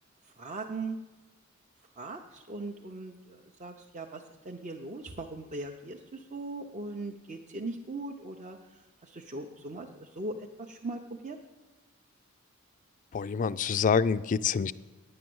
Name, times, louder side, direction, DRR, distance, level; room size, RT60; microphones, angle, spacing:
voice 1, 0.4-1.0 2.0-8.6 9.0-11.4, right 2 dB, 35° right, 1 dB, 0.6 m, -39 dB
voice 2, 13.1-14.7, left 6 dB, 40° left, 15 dB, 0.3 m, -26 dB
10.0 x 8.7 x 7.8 m, 1.3 s
head